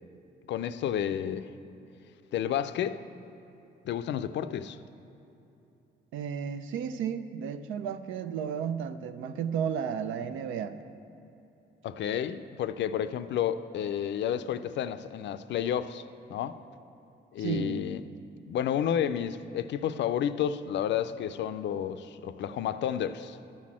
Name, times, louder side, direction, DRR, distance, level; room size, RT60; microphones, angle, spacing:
voice 1, 0.5-1.5 2.3-3.0 3.8-4.8 11.8-16.0 16.3-16.6 17.3-18.0 18.5-23.4, left 9 dB, 65° left, 12 dB, 0.4 m, -31 dB
voice 2, 6.1-10.8 17.4-17.9, right 7 dB, 90° right, 11 dB, 0.5 m, -33 dB
12.0 x 4.2 x 7.3 m, 2.9 s
cardioid pair, 90°, 20 cm